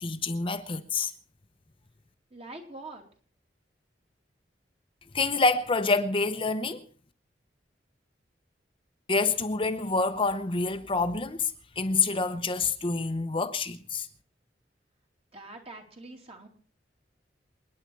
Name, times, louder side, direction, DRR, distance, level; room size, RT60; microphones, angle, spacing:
voice 1, 0.0-1.1 5.1-6.8 9.1-11.5 11.8-14.1, left 3 dB, 30° left, 0.9 m, -27 dB
voice 2, 2.3-3.0 15.3-16.5, right 2 dB, 35° right, 2.8 m, -44 dB
28.0 x 9.8 x 4.6 m
head